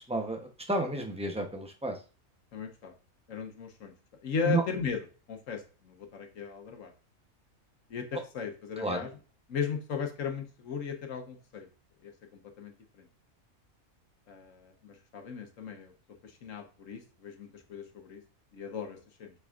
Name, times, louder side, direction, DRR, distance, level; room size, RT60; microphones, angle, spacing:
voice 1, 0.1-2.0 4.4-4.6 8.8-9.1, right 2 dB, 5° right, 3 dB, 0.7 m, -31 dB
voice 2, 2.5-2.9 3.3-3.9 4.2-6.9 7.9-9.1 9.5-11.7 12.0-12.7 13.0-13.1 14.3-15.9 16.2-18.2 18.5-19.3, left 6 dB, 70° left, 5 dB, 1.3 m, -37 dB
6.8 x 6.0 x 2.5 m, 0.37 s
omnidirectional pair, 1.5 m